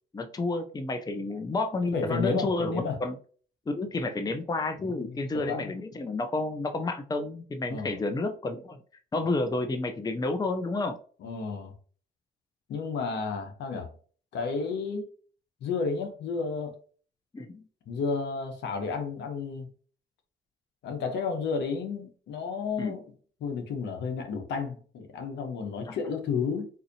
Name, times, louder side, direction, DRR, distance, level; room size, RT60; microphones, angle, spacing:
voice 1, 0.1-3.2 3.7-8.8 9.1-11.0 17.3-17.6 22.8-23.0 25.9-26.0, left 2 dB, 20° left, 0.5 m, -30 dB
voice 2, 1.9-3.0 4.8-5.7 7.7-8.0 11.2-11.7 12.7-13.9 14.3-15.1 15.6-16.7 17.9-19.7 20.8-23.0 23.4-26.7, left 5 dB, 70° left, 0.9 m, -32 dB
4.0 x 2.6 x 2.7 m
supercardioid pair, 75°, 18 cm